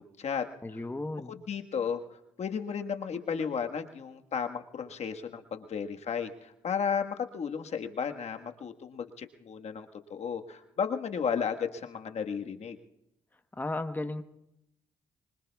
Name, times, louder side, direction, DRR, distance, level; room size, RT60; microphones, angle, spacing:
voice 1, 0.0-0.4 1.3-2.0 2.4-12.8, left 6 dB, 60° left, 5 dB, 1.5 m, -34 dB
voice 2, 0.6-1.3 13.5-14.2, left 2 dB, 15° left, 8 dB, 1.1 m, -34 dB
25.0 x 24.0 x 2.4 m, 0.84 s
supercardioid pair, 60°, 13 cm